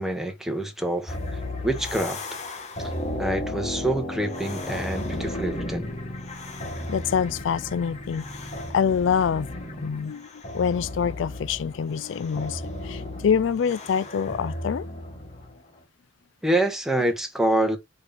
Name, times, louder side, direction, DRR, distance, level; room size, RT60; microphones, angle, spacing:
voice 1, 0.0-2.3 2.8-2.9 3.2-5.9 16.4-17.8, right 1 dB, ahead, 1.5 m, -26 dB
sound 1, 1.1-15.6, left 1 dB, 35° left, 1.5 m, -34 dB
voice 2, 6.9-14.8, left 7 dB, 70° left, 0.3 m, -26 dB
5.4 x 4.8 x 4.3 m
head